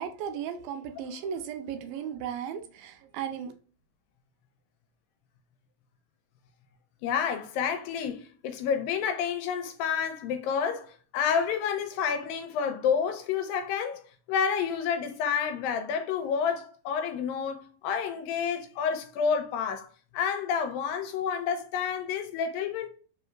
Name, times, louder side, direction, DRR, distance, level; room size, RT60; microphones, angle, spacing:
voice 1, 0.0-3.5, right 8 dB, 80° right, 2.3 m, -36 dB
voice 2, 7.0-19.9 20.1-22.9, left 7 dB, 80° left, 2.2 m, -29 dB
5.0 x 4.0 x 2.3 m
omnidirectional pair, 4.3 m